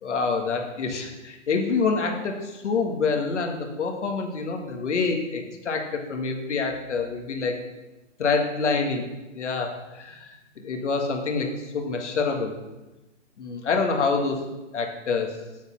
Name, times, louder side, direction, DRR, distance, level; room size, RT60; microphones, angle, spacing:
voice 1, 0.0-7.5 8.2-9.0 9.3-12.5 13.4-14.4 14.7-15.3, left 4 dB, 75° left, 3 dB, 1.7 m, -26 dB
7.0 x 6.4 x 5.7 m, 1.1 s
hypercardioid pair, 140°, 36 cm